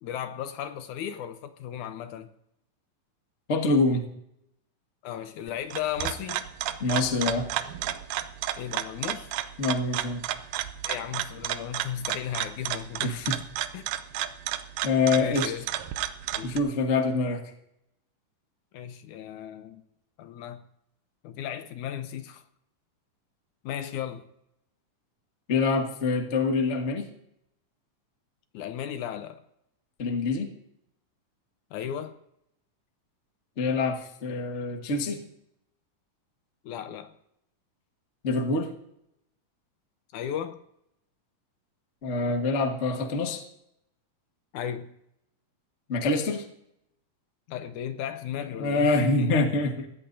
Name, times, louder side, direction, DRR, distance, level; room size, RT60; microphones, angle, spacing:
voice 1, 0.0-2.3 5.0-6.5 8.6-9.3 10.8-13.3 13.7-13.9 15.1-15.7 16.3-16.6 18.7-19.8 20.2-20.6 21.2-22.4 23.6-24.2 28.5-29.4 31.7-32.1 36.6-37.1 40.1-40.6 44.5-44.9 47.5-49.5, left 10 dB, 75° left, 2.1 m, -35 dB
voice 2, 3.5-4.0 6.8-7.5 9.6-10.2 13.0-13.3 14.8-15.5 16.4-17.4 25.5-27.1 30.0-30.5 33.6-35.2 38.2-38.7 42.0-43.4 45.9-46.4 48.6-49.9, left 3 dB, 45° left, 0.8 m, -25 dB
sound 1, 5.5-16.6, right 12 dB, 80° right, 2.2 m, -32 dB
21.0 x 16.5 x 2.7 m
omnidirectional pair, 3.8 m